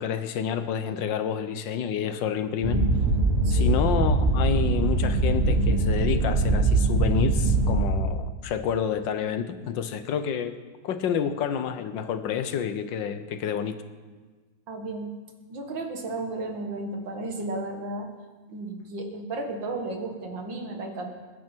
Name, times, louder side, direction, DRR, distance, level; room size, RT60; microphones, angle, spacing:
voice 1, 0.0-2.8 3.5-10.6 10.8-13.8, left 8 dB, 75° left, 10 dB, 1.5 m, -29 dB
sound 1, 2.6-7.9, right 2 dB, 30° right, 3.2 m, -22 dB
voice 2, 3.4-3.8 14.7-15.1 15.5-18.1 18.5-21.1, right 2 dB, 70° right, 3 dB, 2.4 m, -34 dB
21.5 x 11.0 x 4.5 m, 1.4 s
omnidirectional pair, 2.1 m